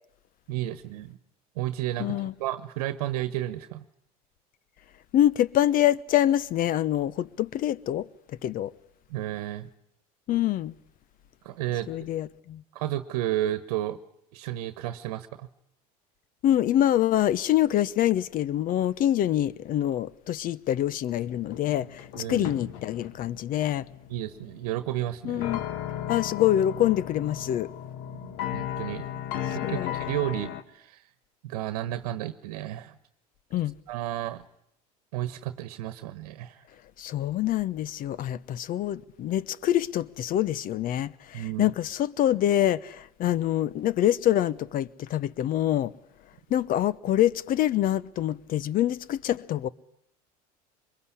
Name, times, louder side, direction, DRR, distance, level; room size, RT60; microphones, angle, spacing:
voice 1, 0.5-1.2 1.6-3.8 9.1-9.7 11.4-11.9 12.7-14.0 14.3-15.3 22.2-22.5 24.1-25.5 28.2-29.0 29.5-31.0 31.4-32.9 33.9-34.4 35.1-36.6 41.3-41.7, right 13 dB, 75° right, 1.3 m, -32 dB
voice 2, 2.0-2.3 5.1-8.1 8.4-8.7 10.3-10.7 11.9-12.6 16.4-23.9 25.2-25.6 26.1-27.7 29.6-30.0 33.5-33.7 37.0-45.9 46.5-49.7, left 12 dB, 45° left, 1.0 m, -25 dB
sound 1, 21.1-30.6, left 11 dB, 65° left, 1.9 m, -36 dB
24.0 x 22.0 x 10.0 m
hypercardioid pair, 90°, 19 cm